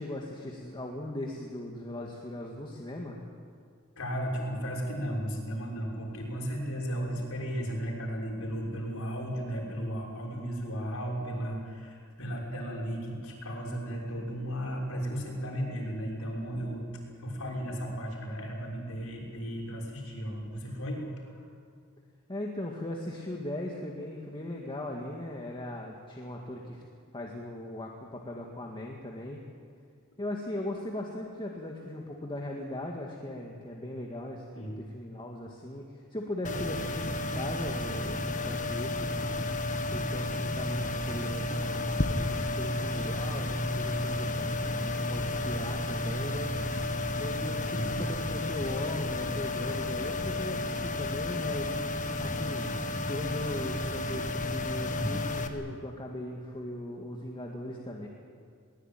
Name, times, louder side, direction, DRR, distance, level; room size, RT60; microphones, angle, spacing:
voice 1, 0.0-3.2 22.3-26.8 27.1-29.4 30.2-39.1 39.9-46.8 47.2-51.9 52.2-52.7 53.0-58.1, left 1 dB, 25° left, 0 dB, 2.0 m, -38 dB
voice 2, 4.0-16.9 17.2-21.5 34.5-34.8 39.8-40.0 47.3-48.0 55.0-55.1, equal, 75° left, -2 dB, 6.2 m, -35 dB
sound 1, 36.4-55.5, left 2 dB, 40° left, 1.6 m, -32 dB
22.0 x 19.0 x 9.1 m, 2.2 s
head